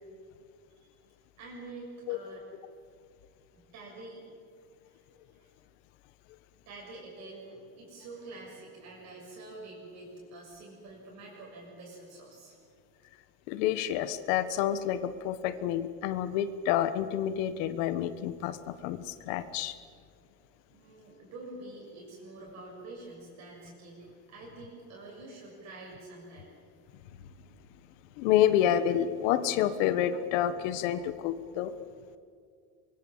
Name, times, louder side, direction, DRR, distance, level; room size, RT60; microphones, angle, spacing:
voice 1, 1.4-2.4 3.5-4.2 4.9-5.0 5.3-5.5 6.7-12.5 20.7-26.5, right 2 dB, 45° right, -3 dB, 6.9 m, -47 dB
voice 2, 13.5-19.7 28.2-31.7, left 11 dB, 75° left, 12 dB, 1.4 m, -28 dB
24.0 x 23.5 x 7.4 m, 2.2 s
cardioid pair, 160°, 38 cm